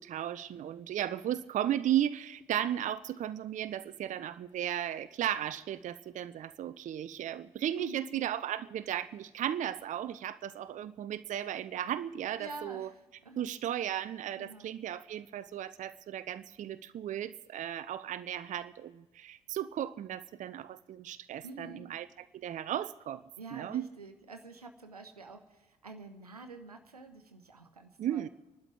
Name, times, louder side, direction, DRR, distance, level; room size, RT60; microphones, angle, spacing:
voice 1, 0.0-12.9 13.4-23.2 23.5-23.9 28.0-28.3, right 11 dB, 40° right, 14 dB, 0.6 m, -35 dB
voice 2, 7.7-8.2 12.3-13.5 14.4-14.7 21.4-21.9 23.4-28.3, right 3 dB, 90° right, 7 dB, 0.9 m, -48 dB
28.0 x 12.0 x 3.6 m, 1.1 s
figure-of-eight pair, 45°, 19 cm